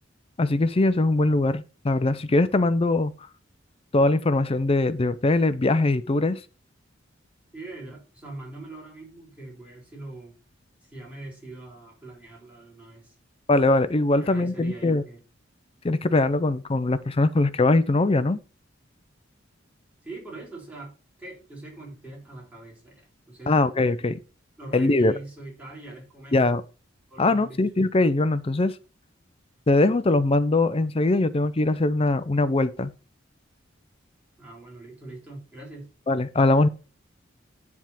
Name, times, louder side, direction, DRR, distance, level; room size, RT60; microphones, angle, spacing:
voice 1, 0.4-3.1 3.9-6.4 13.5-15.0 15.8-18.4 23.5-24.2 24.7-25.1 26.3-26.6 27.2-28.7 29.7-32.9 36.1-36.7, left 2 dB, 30° left, 0.5 m, -21 dB
voice 2, 7.5-10.3 10.8-13.1 14.2-15.2 20.0-23.5 24.6-26.6 27.1-27.6 34.4-35.9, right 2 dB, 10° right, 3.7 m, -42 dB
10.0 x 3.6 x 5.7 m
head